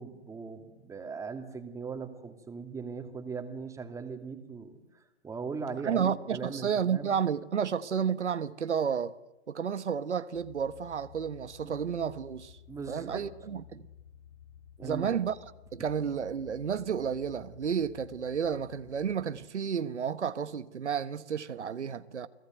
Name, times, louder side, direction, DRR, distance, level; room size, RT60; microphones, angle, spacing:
voice 1, 0.0-7.1 11.6-11.8 12.7-13.3 14.8-15.2, right 5 dB, 10° right, 2.5 m, -39 dB
voice 2, 5.8-9.1 9.5-12.6 12.9-13.9 14.8-15.3 15.7-22.3, right 7 dB, 80° right, 1.3 m, -31 dB
sound 1, 10.3-19.5, left 9 dB, 75° left, 5.5 m, -54 dB
29.0 x 19.0 x 9.3 m
hypercardioid pair, 130°, 34 cm